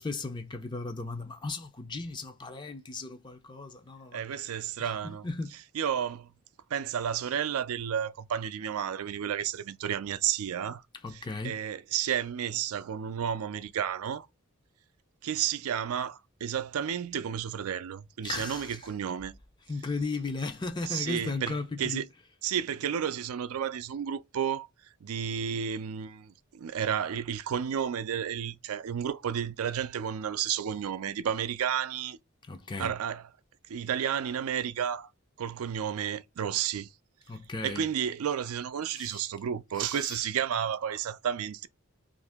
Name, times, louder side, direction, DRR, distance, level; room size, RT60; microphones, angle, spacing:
voice 1, 0.0-4.2 4.5-5.6 10.9-11.6 18.2-18.9 19.7-22.1 32.5-32.9 37.3-37.9 38.9-39.3 39.7-40.2, left 3 dB, 20° left, 0.4 m, -36 dB
voice 2, 4.1-5.3 5.7-6.3 6.7-10.8 11.4-14.3 15.2-19.4 20.9-22.1 22.4-24.7 25.0-32.2 32.8-33.2 33.7-35.1 35.4-36.9 37.6-41.7, right 8 dB, 85° right, 0.4 m, -32 dB
2.8 x 2.6 x 3.4 m
head